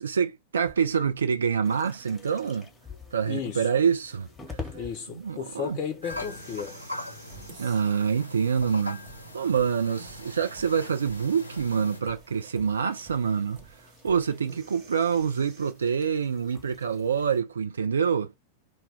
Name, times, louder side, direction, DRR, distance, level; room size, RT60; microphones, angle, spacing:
voice 1, 0.0-2.7 3.1-4.6 5.1-5.8 7.6-9.0 9.3-13.6 14.0-18.3, right 6 dB, 70° right, 0.4 m, -26 dB
sound 1, 0.7-15.7, right 5 dB, 40° right, 1.1 m, -53 dB
sound 2, 1.6-17.4, left 4 dB, 10° left, 0.8 m, -49 dB
voice 2, 3.2-3.7 4.7-6.8, left 7 dB, 35° left, 0.4 m, -34 dB
sound 3, 6.0-12.0, left 1 dB, 85° right, 1.1 m, -41 dB
2.1 x 2.1 x 3.4 m
figure-of-eight pair, 90°, 0 cm